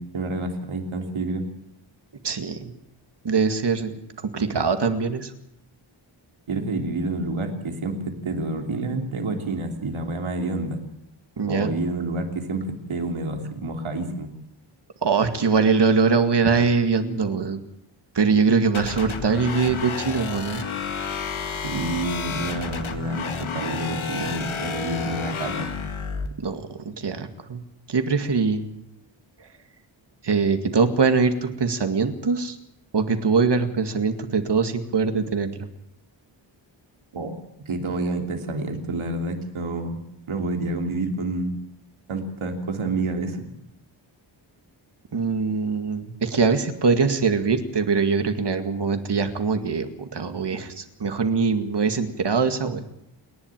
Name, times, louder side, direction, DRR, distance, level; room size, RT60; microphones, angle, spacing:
voice 1, 0.0-1.4 6.5-10.8 11.5-14.3 21.6-25.7 37.1-37.3 37.6-40.0 40.3-41.6 42.1-43.5, right 2 dB, 85° right, 4 dB, 3.2 m, -28 dB
voice 2, 2.2-2.7 3.2-5.3 11.4-11.7 15.0-17.6 18.1-20.6 26.4-27.6 27.9-28.7 30.2-32.6 32.9-35.7 45.1-52.9, right 5 dB, 60° right, 8 dB, 2.2 m, -22 dB
sound 1, 18.7-26.3, left 5 dB, 85° left, 2.1 m, -31 dB
28.5 x 11.0 x 9.0 m, 0.79 s
wide cardioid pair, 140°, 47 cm